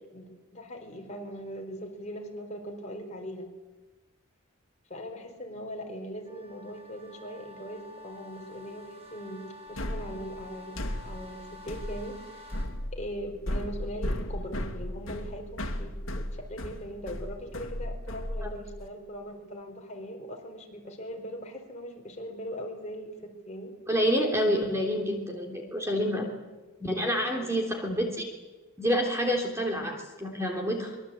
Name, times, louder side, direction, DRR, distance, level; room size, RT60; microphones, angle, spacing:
voice 1, 0.1-3.5 4.9-12.5 12.9-23.7 26.0-26.2 27.1-27.5, equal, 30° left, 2 dB, 4.5 m, -40 dB
sound 1, 6.2-12.7, left 2 dB, 30° right, 6.5 m, -49 dB
sound 2, 9.8-18.9, left 1 dB, 65° left, 2.5 m, -35 dB
voice 2, 23.9-26.2 26.8-28.2 28.8-31.0, equal, 10° right, 2 dB, 3.3 m, -28 dB
24.5 x 22.5 x 8.6 m, 1.2 s
head